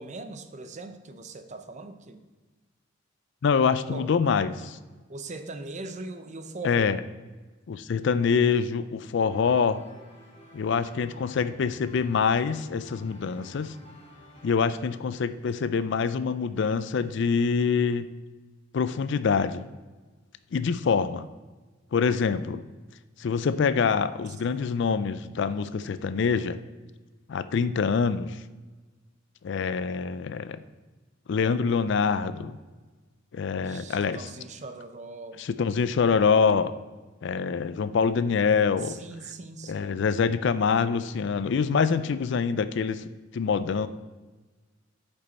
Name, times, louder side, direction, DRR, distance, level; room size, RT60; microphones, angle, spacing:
voice 1, 0.0-2.2 3.9-4.1 5.1-7.0 25.6-25.8 33.6-35.5 38.8-40.1, right 3 dB, 35° right, 8 dB, 0.6 m, -40 dB
voice 2, 3.4-4.8 6.6-7.0 7.7-9.8 10.5-13.7 14.4-18.1 18.7-19.7 20.5-21.3 21.9-22.6 23.2-26.6 27.3-28.4 29.4-30.6 31.3-32.6 33.3-34.3 35.4-36.7 37.2-39.0 39.7-43.9, left 5 dB, 60° left, 13 dB, 0.4 m, -25 dB
sound 1, 9.3-14.6, left 1 dB, 35° left, 2.4 m, -52 dB
13.0 x 5.3 x 4.1 m, 1.3 s
head